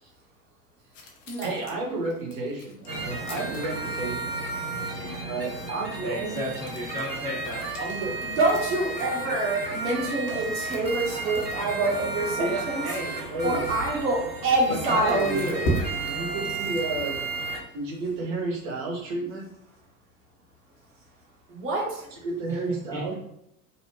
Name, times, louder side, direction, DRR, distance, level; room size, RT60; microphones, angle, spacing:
sound 1, 0.9-4.2 6.3-11.8 12.3-12.4 12.7-12.8 14.3-14.4 14.8-17.4, equal, 50° left, 0.8 m, -38 dB
voice 1, 1.4-4.4 5.2-6.5 7.8-8.1 12.4-13.6 14.7-17.3 17.7-19.5 22.1-23.1, right 2 dB, 55° right, -1 dB, 0.9 m, -32 dB
sound 2, 2.9-17.6, right 3 dB, 85° right, 0.8 m, -33 dB
voice 2, 6.0-7.7 22.9-23.1, equal, 5° left, -10 dB, 0.4 m, -33 dB
voice 3, 8.2-12.8 13.4-15.6 21.5-22.1, right 2 dB, 25° right, -3 dB, 0.9 m, -26 dB
2.7 x 2.1 x 2.9 m, 0.77 s
figure-of-eight pair, 80°, 48 cm